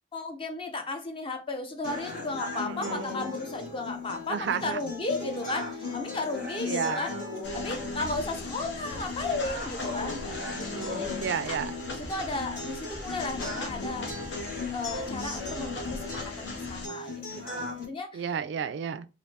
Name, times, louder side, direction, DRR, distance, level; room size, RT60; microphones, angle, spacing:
voice 1, 0.1-7.1 7.5-11.1 11.5-11.6 11.9-14.1 14.7-18.3, left 2 dB, 30° left, 0.6 m, -35 dB
sound 1, 1.8-17.8, left 3 dB, 60° left, 1.6 m, -37 dB
voice 2, 2.7-3.1 4.3-4.8 6.7-7.0 10.7-11.7 18.1-19.1, right 7 dB, 70° right, 0.3 m, -32 dB
sound 2, 7.4-16.9, left 2 dB, 75° left, 0.6 m, -40 dB
3.2 x 2.5 x 2.7 m
head